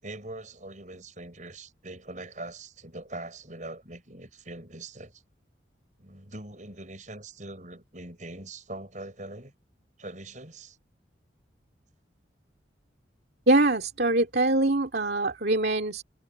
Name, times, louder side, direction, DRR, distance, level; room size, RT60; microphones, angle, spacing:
voice 1, 0.0-5.2 6.0-9.5 10.0-10.8, right 2 dB, 40° right, 6.3 m, -42 dB
voice 2, 13.5-16.0, right 2 dB, 60° right, 2.4 m, -23 dB
head